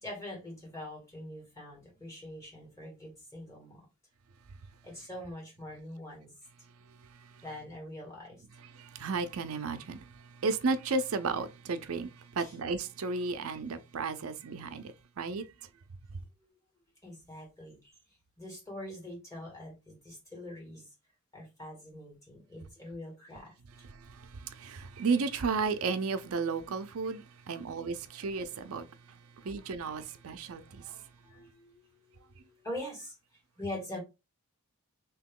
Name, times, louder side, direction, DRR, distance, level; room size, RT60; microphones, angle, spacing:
voice 1, 0.0-3.9 4.8-6.3 7.4-8.4 12.4-12.6 15.6-15.7 16.4-16.6 17.0-17.9 18.4-20.9 21.3-23.5 27.5-27.7 28.0-28.3 29.3-29.7 30.2-30.4 31.0-33.1 33.6-34.0, left 1 dB, 15° left, 1.8 m, -44 dB
voice 2, 8.7-15.5 23.9-28.9 29.4-31.0, right 4 dB, 70° right, 0.5 m, -33 dB
2.9 x 2.9 x 3.6 m
head